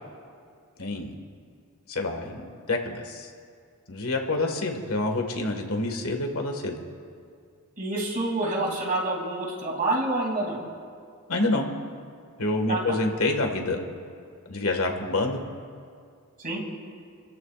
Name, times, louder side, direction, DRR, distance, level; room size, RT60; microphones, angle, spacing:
voice 1, 0.8-1.1 1.9-3.3 3.9-6.7 11.3-11.7 12.4-13.8 14.5-15.4, left 2 dB, 75° left, 3 dB, 1.8 m, -27 dB
voice 2, 7.8-10.6 12.7-13.0 16.4-16.6, right 2 dB, 40° right, -1 dB, 2.8 m, -27 dB
30.0 x 14.0 x 2.5 m, 2.2 s
head